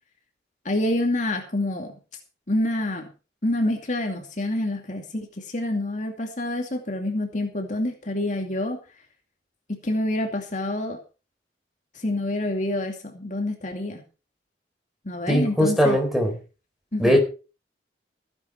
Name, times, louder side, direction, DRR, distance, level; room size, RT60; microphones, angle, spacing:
voice 1, 0.6-1.9 2.5-3.1 3.4-8.8 9.7-11.0 11.9-14.0 15.0-16.0 16.9-17.2, left 1 dB, 45° left, 3 dB, 2.5 m, -27 dB
voice 2, 15.3-16.3 17.0-17.2, equal, ahead, 3 dB, 4.3 m, -20 dB
16.0 x 10.5 x 4.6 m, 0.34 s
head